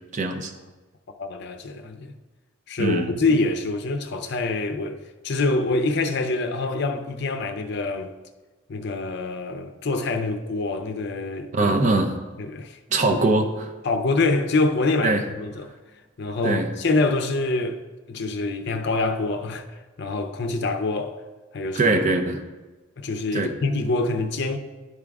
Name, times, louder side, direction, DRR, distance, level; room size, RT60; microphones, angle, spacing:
voice 1, 0.1-0.5 2.8-3.1 11.5-12.2 12.9-13.7 15.0-15.2 16.4-16.7 21.7-22.4 23.3-23.5, right 2 dB, 35° right, 0.6 m, -22 dB
voice 2, 1.2-2.1 2.7-8.1 8.7-11.7 12.4-12.8 13.1-13.2 13.8-15.7 16.2-17.8 18.1-19.7 20.0-21.1 21.5-21.9 23.0-24.6, left 3 dB, 55° left, 0.5 m, -25 dB
10.5 x 3.6 x 3.5 m
head